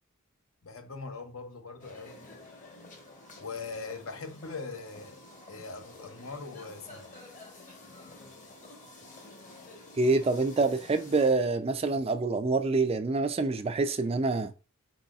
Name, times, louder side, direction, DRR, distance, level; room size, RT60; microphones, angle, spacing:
voice 1, 0.6-2.3 3.4-5.2 5.5-7.1, left 4 dB, 70° left, 0.8 m, -41 dB
sound 1, 1.8-11.3, left 2 dB, 35° left, 1.1 m, -50 dB
voice 2, 10.0-14.5, right 3 dB, 25° right, 0.4 m, -26 dB
4.7 x 4.1 x 2.4 m
head